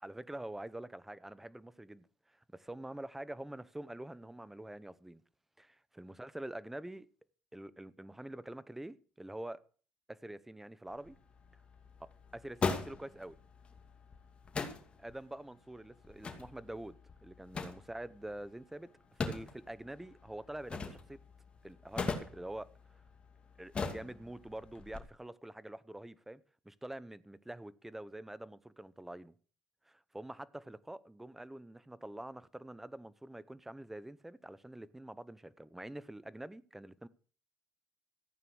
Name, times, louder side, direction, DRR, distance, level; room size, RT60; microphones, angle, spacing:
voice 1, 0.0-5.2 5.6-7.1 7.5-9.6 10.1-11.2 12.0-13.4 15.0-21.2 21.6-22.7 23.6-29.3 29.9-37.1, right 1 dB, 5° right, 0.9 m, -46 dB
sound 1, 10.9-25.0, left 4 dB, 30° left, 2.5 m, -42 dB
15.0 x 9.1 x 6.2 m
cardioid pair, 100°, 4 cm